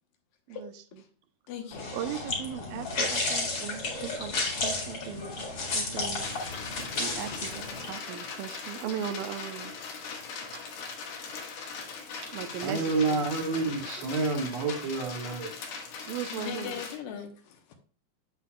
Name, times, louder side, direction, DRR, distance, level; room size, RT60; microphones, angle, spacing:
voice 1, 0.5-1.0 1.9-5.5 5.7-6.2 7.0-9.7 10.5-10.6 12.3-13.2 16.1-16.7, right 9 dB, 85° right, 2.5 m, -38 dB
voice 2, 1.5-1.9 16.3-17.8, left 8 dB, 75° left, 2.8 m, -39 dB
sound 1, 1.7-7.9, left 3 dB, 40° left, 2.2 m, -32 dB
sound 2, 6.2-17.0, left 5 dB, 90° left, 3.5 m, -40 dB
voice 3, 12.6-15.7, right 3 dB, 55° right, 2.3 m, -29 dB
8.1 x 7.6 x 2.3 m
omnidirectional pair, 4.2 m